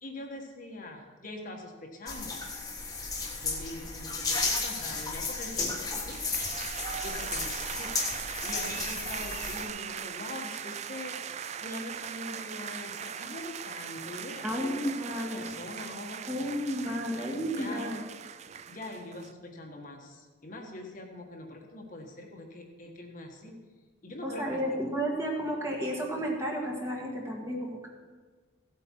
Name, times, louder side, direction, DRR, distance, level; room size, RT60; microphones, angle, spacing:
voice 1, 0.0-2.3 3.4-6.2 7.0-16.2 17.5-18.0 18.7-23.6 24.0-24.6, left 2 dB, 40° left, 1 dB, 1.5 m, -43 dB
sound 1, 2.1-9.7, left 3 dB, 20° left, 1.4 m, -34 dB
sound 2, 6.1-19.3, right 8 dB, 35° right, 0.3 m, -40 dB
voice 2, 14.4-15.5 16.3-18.0 24.2-27.9, equal, 15° right, -1 dB, 1.7 m, -32 dB
16.0 x 8.4 x 4.6 m, 1.4 s
head